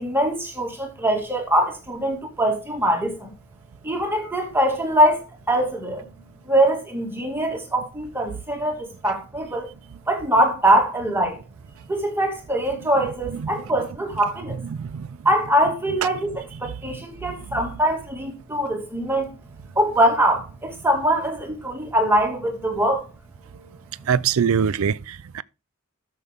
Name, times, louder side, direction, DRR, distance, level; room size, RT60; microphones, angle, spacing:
voice 1, 0.0-3.3 3.8-6.1 6.5-9.7 10.1-11.4 11.9-14.6 15.3-19.3 19.8-23.1, right 1 dB, 10° right, 2.0 m, -22 dB
voice 2, 24.1-25.4, right 7 dB, 65° right, 0.4 m, -22 dB
13.0 x 6.8 x 3.5 m
head